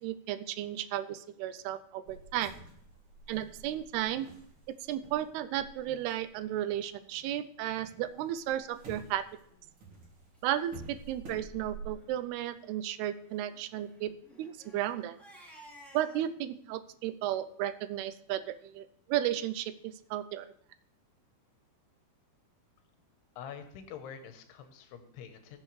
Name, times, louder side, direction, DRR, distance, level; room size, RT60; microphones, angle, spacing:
voice 1, 0.0-2.5 3.3-4.3 4.9-9.2 10.4-14.1 14.4-15.2 15.9-20.5, right 12 dB, 85° right, 12 dB, 2.7 m, -34 dB
sound 1, 2.1-7.2 7.5-11.9, right 3 dB, 40° right, 3.0 m, -50 dB
Crying sobbing, 9.4-9.7 10.3-10.4 10.7-10.8 11.2-11.4 11.8-12.1 13.2-16.3, right 1 dB, ahead, 2.4 m, -56 dB
voice 2, 23.4-25.6, left 8 dB, 85° left, 8 dB, 3.1 m, -46 dB
19.5 x 7.5 x 3.2 m, 0.64 s
omnidirectional pair, 4.6 m